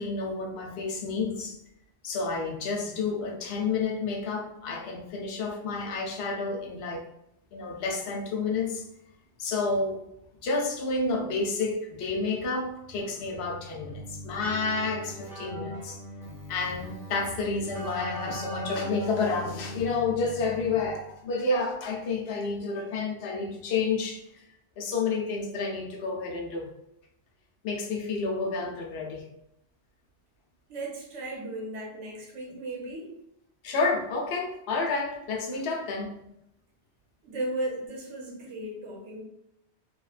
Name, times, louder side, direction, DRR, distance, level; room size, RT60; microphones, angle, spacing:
voice 1, 0.0-1.6 2.0-7.1 7.5-8.8 9.4-10.0 10.4-16.0 16.5-24.4 24.8-26.7 27.6-29.2 33.6-36.2, left 4 dB, 70° left, 1 dB, 0.8 m, -30 dB
Keyboard (musical), 13.9-21.2, equal, 5° right, 0.4 m, -39 dB
voice 2, 30.7-33.1 37.2-39.2, right 1 dB, 90° right, -1 dB, 1.0 m, -35 dB
3.0 x 2.2 x 2.3 m, 0.82 s
omnidirectional pair, 1.2 m